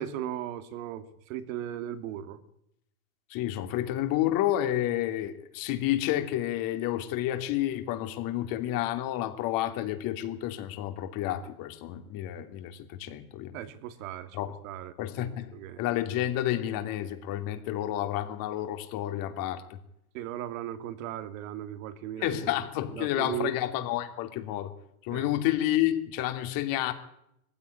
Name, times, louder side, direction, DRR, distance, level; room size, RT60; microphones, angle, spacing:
voice 1, 0.0-2.4 13.5-14.4 14.6-14.9 15.2-15.8 20.1-22.5 22.9-23.5 25.1-25.3, right 11 dB, 65° right, 10 dB, 2.4 m, -37 dB
voice 2, 3.3-13.6 14.3-14.5 15.0-15.5 15.8-19.8 22.2-24.7 25.0-26.9, left 13 dB, 50° left, 8 dB, 3.1 m, -30 dB
20.5 x 15.5 x 9.8 m, 0.79 s
hypercardioid pair, 115°, 43 cm